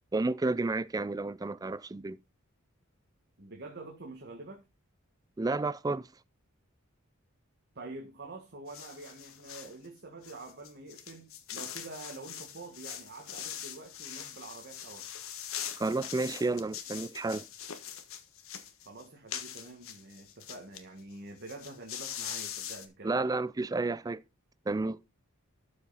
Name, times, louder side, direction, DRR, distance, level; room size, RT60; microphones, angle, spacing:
voice 1, 0.1-2.2 5.4-6.1 15.8-17.5 23.0-24.2 24.7-25.0, right 3 dB, 20° right, 0.4 m, -31 dB
voice 2, 3.4-4.6 7.7-15.1 18.8-23.1, right 2 dB, 50° right, 1.7 m, -46 dB
sound 1, 8.7-9.7 10.2-20.8 21.1-21.2 21.4-22.9, left 9 dB, 75° left, 1.4 m, -42 dB
12.5 x 5.5 x 4.0 m
head